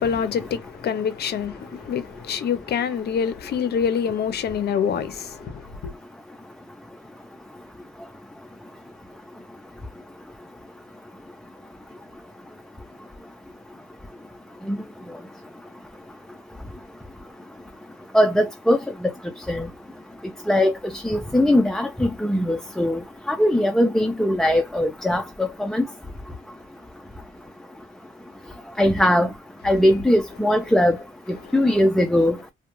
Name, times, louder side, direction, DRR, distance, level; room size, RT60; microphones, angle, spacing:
voice 1, 0.0-5.9, left 7 dB, 55° left, 0.6 m, -26 dB
voice 2, 18.1-18.8 19.5-19.7 20.5-23.0 23.3-25.8 28.8-29.3 29.6-31.0 31.5-32.3, left 1 dB, 5° left, 0.4 m, -20 dB
2.3 x 2.2 x 2.9 m
cardioid pair, 90°, 20 cm